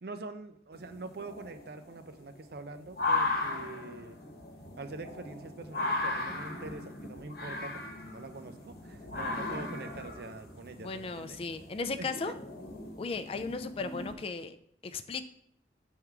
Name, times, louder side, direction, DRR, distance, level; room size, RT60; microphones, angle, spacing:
voice 1, 0.0-4.2 4.8-11.4 11.9-12.3, right 3 dB, 60° right, 9 dB, 0.5 m, -44 dB
sound 1, 0.7-14.2, left 2 dB, 60° left, 1.0 m, -37 dB
voice 2, 10.8-12.3 13.0-14.6 14.8-15.2, left 4 dB, 30° left, 9 dB, 0.3 m, -36 dB
6.7 x 3.6 x 4.7 m, 0.71 s
head